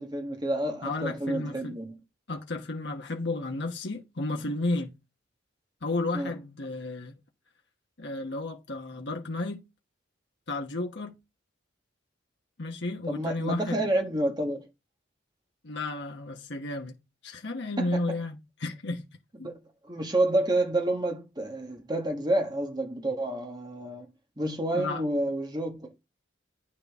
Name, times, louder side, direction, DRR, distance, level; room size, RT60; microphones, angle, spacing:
voice 1, 0.0-2.0 6.1-6.3 13.1-14.7 17.8-18.2 19.4-19.6 19.9-24.1 24.4-25.9, right 1 dB, 20° right, 1.4 m, -29 dB
voice 2, 0.8-1.8 2.3-4.9 5.8-7.1 8.0-9.6 10.5-11.1 12.6-13.8 15.6-16.9 17.2-19.1 19.4-19.5 24.7-25.0, left 2 dB, 60° left, 1.2 m, -32 dB
9.3 x 6.5 x 3.6 m
head